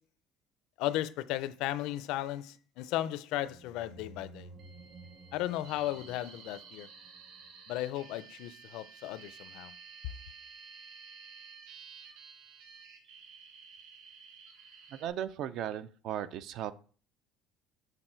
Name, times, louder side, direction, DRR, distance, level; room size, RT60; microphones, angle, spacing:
voice 1, 0.8-4.5 5.3-6.9 7.7-9.7, left 14 dB, 65° left, 0.4 m, -35 dB
sound 1, 3.4-8.0, right 2 dB, 25° right, 0.7 m, -54 dB
sound 2, 4.6-15.1, right 5 dB, 80° right, 1.4 m, -52 dB
voice 2, 14.9-16.7, right 10 dB, 50° right, 0.3 m, -36 dB
6.9 x 4.0 x 4.4 m
cardioid pair, 175°, 0 cm